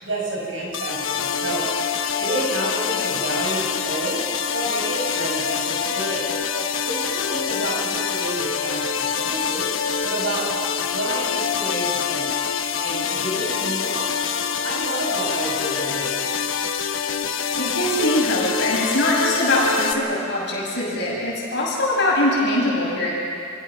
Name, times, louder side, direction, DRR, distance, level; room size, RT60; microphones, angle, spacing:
voice 1, 0.0-1.8 2.2-4.3 4.5-6.3 6.9-9.7 10.0-10.5 10.9-12.3 12.8-14.1 14.6-16.3, right 2 dB, 75° right, -3 dB, 7.0 m, -30 dB
sound 1, 0.7-19.9, left 7 dB, 85° left, 1.1 m, -25 dB
voice 2, 17.5-23.1, left 1 dB, 60° left, -4 dB, 7.5 m, -22 dB
28.5 x 16.5 x 6.4 m, 2.4 s
head